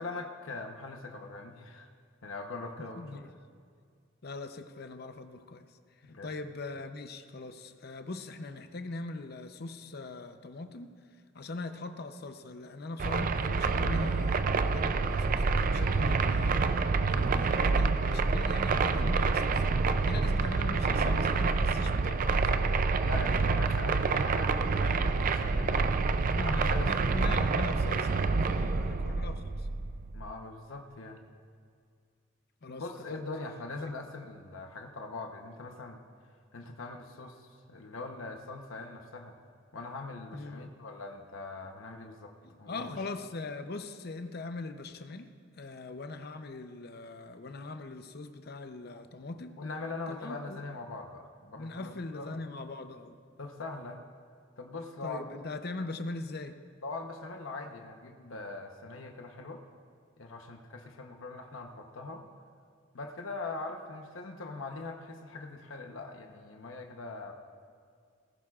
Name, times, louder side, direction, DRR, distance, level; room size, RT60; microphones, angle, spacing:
voice 1, 0.0-1.9 2.2-3.3 6.0-6.4 23.0-27.1 28.5-28.7 30.1-31.2 32.7-36.0 36.5-39.4 39.7-43.0 48.8-49.0 49.6-52.4 53.4-54.0 54.6-55.3 56.8-59.6 60.2-62.2 62.9-67.3, left 3 dB, 85° left, 3 dB, 0.9 m, -42 dB
voice 2, 3.0-3.3 4.2-5.8 6.2-10.9 11.3-22.8 26.3-29.7 32.6-32.8 33.1-33.2 33.8-33.9 40.3-40.7 42.4-45.3 45.5-49.5 50.1-50.6 51.6-53.2 55.0-56.6, left 3 dB, 50° left, 8 dB, 0.7 m, -41 dB
sound 1, 13.0-30.3, right 4 dB, 45° right, 0.4 m, -27 dB
19.0 x 15.0 x 2.4 m, 2.1 s
head